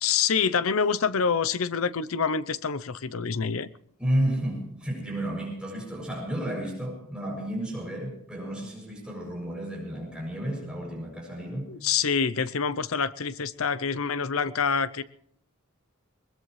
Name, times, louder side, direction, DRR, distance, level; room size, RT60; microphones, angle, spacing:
voice 1, 0.0-3.7 11.7-15.0, left 6 dB, 75° left, 0.7 m, -26 dB
voice 2, 4.0-11.7, right 1 dB, 5° right, 7.2 m, -32 dB
21.0 x 21.0 x 3.2 m
head